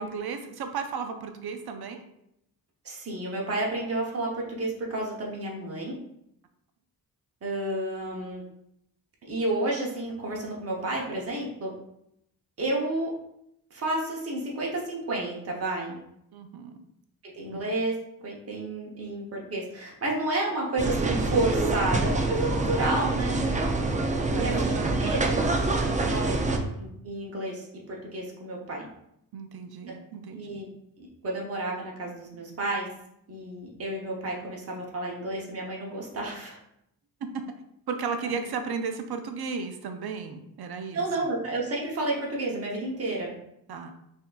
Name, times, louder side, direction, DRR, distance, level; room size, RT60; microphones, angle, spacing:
voice 1, 0.0-2.0 16.3-16.8 17.5-17.6 24.2-25.4 25.8-26.2 29.3-30.6 37.3-37.4 37.9-41.1 43.7-43.9, right 5 dB, 75° right, 6 dB, 0.6 m, -35 dB
voice 2, 2.8-6.0 7.4-8.4 9.2-11.7 12.6-13.1 13.7-16.0 17.4-23.5 24.3-24.7 25.0-25.3 26.1-26.4 26.8-28.9 30.3-30.7 31.0-32.9 33.3-36.6 40.9-43.4, right 2 dB, 40° right, -2 dB, 0.9 m, -31 dB
sound 1, 20.8-26.6, right 2 dB, 20° right, 0.4 m, -26 dB
5.6 x 2.7 x 2.4 m, 0.78 s
wide cardioid pair, 110°, 38 cm